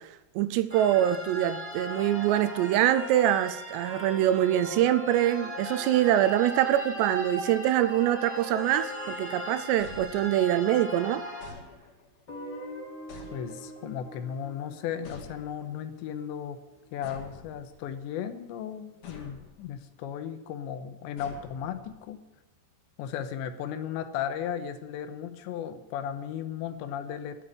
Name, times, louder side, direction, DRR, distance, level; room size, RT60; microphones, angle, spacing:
voice 1, 0.4-11.2, right 12 dB, 80° right, 2.7 m, -24 dB
sound 1, 0.7-11.5, equal, 5° left, 1.3 m, -38 dB
sound 2, 9.8-10.7 11.4-12.2 13.1-14.0 15.0-15.9 17.0-18.1 19.0-19.8 21.2-22.1, left 4 dB, 60° left, 3.8 m, -48 dB
Guitar, 12.3-17.1, equal, 30° left, 2.9 m, -45 dB
voice 2, 13.3-16.6 16.9-22.2 23.0-27.4, left 9 dB, 85° left, 3.1 m, -35 dB
11.5 x 8.6 x 9.9 m
omnidirectional pair, 5.2 m